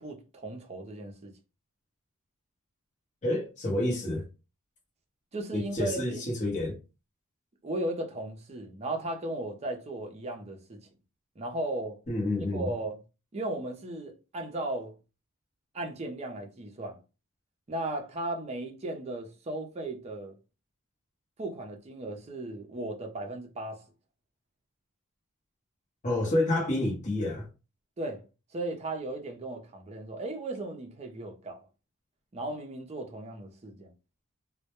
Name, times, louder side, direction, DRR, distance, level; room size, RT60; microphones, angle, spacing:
voice 1, 0.0-1.3 5.3-6.2 7.6-10.8 11.4-12.0 12.5-13.0 13.3-14.9 15.7-17.0 17.7-20.3 21.4-23.8 28.0-28.2 28.5-31.6 32.3-33.9, right 2 dB, 30° right, 0.5 m, -36 dB
voice 2, 3.2-4.3 5.5-6.8 12.1-12.7 26.0-27.5, left 1 dB, 35° left, 0.8 m, -29 dB
2.1 x 2.1 x 2.9 m
head